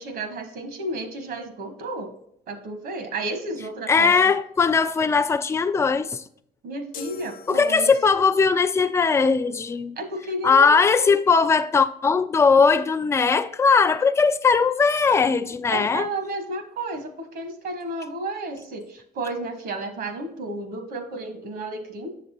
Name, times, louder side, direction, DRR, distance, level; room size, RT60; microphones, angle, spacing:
voice 1, 0.0-2.1 2.5-4.3 6.6-7.9 10.0-11.1 15.7-22.2, right 2 dB, 65° right, 1.5 m, -32 dB
voice 2, 3.9-6.2 7.5-10.0 10.4-16.1, left 5 dB, 15° left, 0.4 m, -19 dB
sound 1, 6.9-8.3, left 4 dB, 55° left, 0.7 m, -42 dB
7.4 x 6.6 x 2.9 m
cardioid pair, 110°, 17 cm